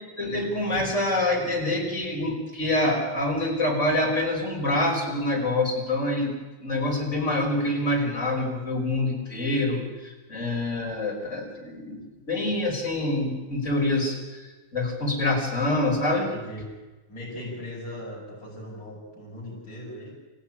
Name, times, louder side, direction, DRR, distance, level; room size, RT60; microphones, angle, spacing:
voice 1, 0.2-14.4 14.7-16.3, left 1 dB, 40° left, -1 dB, 6.1 m, -26 dB
voice 2, 16.3-16.8 17.1-20.1, left 1 dB, 85° left, -6 dB, 7.3 m, -39 dB
27.0 x 15.5 x 10.0 m, 1.2 s
omnidirectional pair, 2.0 m